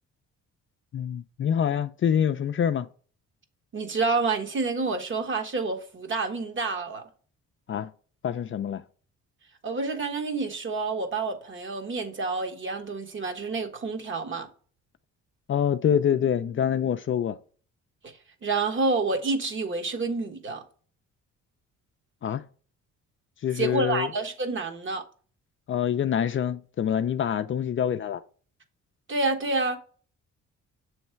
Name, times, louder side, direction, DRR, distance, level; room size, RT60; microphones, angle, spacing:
voice 1, 0.9-2.9 7.7-7.9 8.2-8.8 15.5-17.3 22.2-22.4 23.4-24.1 25.7-28.2, left 9 dB, 40° left, 0.4 m, -25 dB
voice 2, 3.7-7.0 9.6-14.5 18.0-18.1 18.4-20.6 23.6-25.0 29.1-29.8, right 3 dB, 40° right, 1.2 m, -28 dB
7.1 x 3.2 x 4.4 m
cardioid pair, 90°, 30 cm